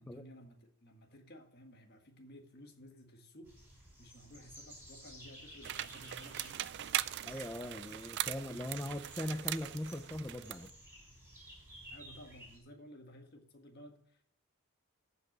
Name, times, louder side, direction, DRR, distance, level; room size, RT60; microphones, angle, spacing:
voice 1, 0.0-6.6 7.3-8.1 11.9-14.2, equal, 45° left, 4 dB, 1.6 m, -56 dB
sound 1, 3.4-12.6, equal, 10° right, 4.5 m, -55 dB
sound 2, 5.6-10.7, right 13 dB, 50° right, 0.3 m, -40 dB
voice 2, 7.2-10.7, left 1 dB, 10° left, 5 dB, 0.5 m, -40 dB
14.0 x 5.3 x 6.0 m, 0.73 s
head